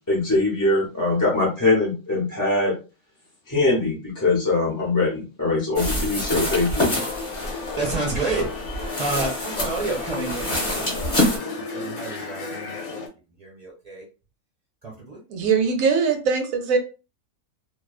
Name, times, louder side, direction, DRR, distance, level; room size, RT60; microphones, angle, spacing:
voice 1, 0.1-2.7 3.5-6.9, left 2 dB, 15° left, -6 dB, 0.7 m, -22 dB
sound 1, 5.7-11.4, left 1 dB, 35° left, 1.1 m, -26 dB
sound 2, 6.9-13.1, left 4 dB, 75° left, 1.0 m, -34 dB
voice 2, 7.8-13.1 13.4-14.0 14.8-15.2, right 3 dB, 30° right, -3 dB, 0.9 m, -30 dB
voice 3, 15.3-16.9, right 5 dB, 70° right, 5 dB, 1.0 m, -21 dB
2.6 x 2.3 x 2.3 m, 0.32 s
omnidirectional pair, 1.6 m